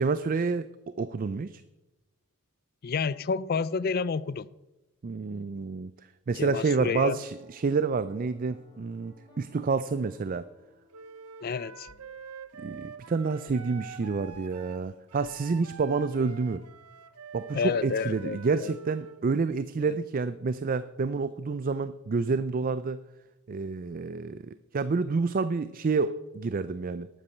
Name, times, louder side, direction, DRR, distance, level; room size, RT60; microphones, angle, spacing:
voice 1, 0.0-1.6 5.0-5.9 6.3-10.5 12.6-16.6 17.3-23.0 23.5-27.1, right 4 dB, 40° right, 0.4 m, -29 dB
voice 2, 2.8-4.5 6.4-7.2 11.4-11.9 17.5-18.7 19.8-19.9, left 5 dB, 45° left, 0.4 m, -30 dB
Piano, 6.3-11.6, left 1 dB, 15° left, 4.8 m, -58 dB
Wind instrument woodwind instrument, 10.9-19.3, right 6 dB, 90° right, 0.8 m, -46 dB
sound 1, 11.9-12.2 13.5-13.8 14.3-14.6 15.2-15.6, left 2 dB, 65° left, 0.9 m, -58 dB
12.5 x 8.6 x 6.5 m
head